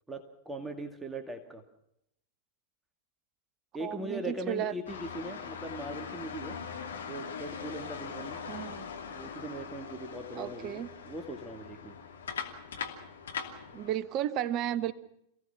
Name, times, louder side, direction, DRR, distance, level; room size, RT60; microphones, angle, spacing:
voice 1, 0.1-1.6 3.7-6.6 7.1-8.4 9.1-12.0, right 1 dB, 10° right, 5 dB, 2.3 m, -40 dB
voice 2, 3.8-4.7 8.5-8.8 10.3-10.9 13.7-14.9, right 11 dB, 35° right, 14 dB, 1.2 m, -33 dB
sound 1, 4.9-13.9, left 6 dB, 70° left, 2.7 m, -41 dB
28.0 x 17.0 x 5.8 m, 0.78 s
figure-of-eight pair, 90°, 0 cm